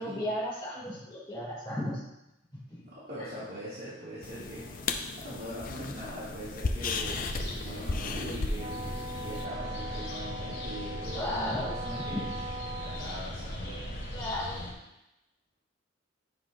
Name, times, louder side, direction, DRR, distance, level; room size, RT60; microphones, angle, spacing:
voice 1, 0.0-2.0 2.5-2.8 10.9-11.7 12.1-12.2 13.6-14.6, left 1 dB, 25° left, -6 dB, 2.7 m, -35 dB
voice 2, 2.8-8.9 9.2-12.3 12.8-13.8, equal, 55° right, -11 dB, 2.3 m, -42 dB
sound 1, 4.2-9.4, left 3 dB, 45° left, 0.5 m, -35 dB
sound 2, 7.0-14.7, left 1 dB, 60° left, 2.7 m, -39 dB
Wind instrument woodwind instrument, 8.6-13.1, right 2 dB, 25° right, 0.9 m, -40 dB
10.0 x 5.8 x 2.7 m, 0.90 s
head